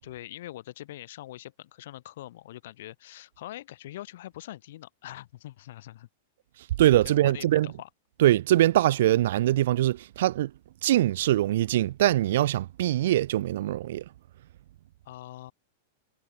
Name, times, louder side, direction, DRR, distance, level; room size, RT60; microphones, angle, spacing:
voice 1, 0.0-6.1 7.0-7.9 15.0-15.5, left 14 dB, 60° left, 6.9 m, -43 dB
voice 2, 6.8-7.7 8.2-10.5 10.8-14.0, right 13 dB, 65° right, 0.5 m, -23 dB
supercardioid pair, 160°, 0 cm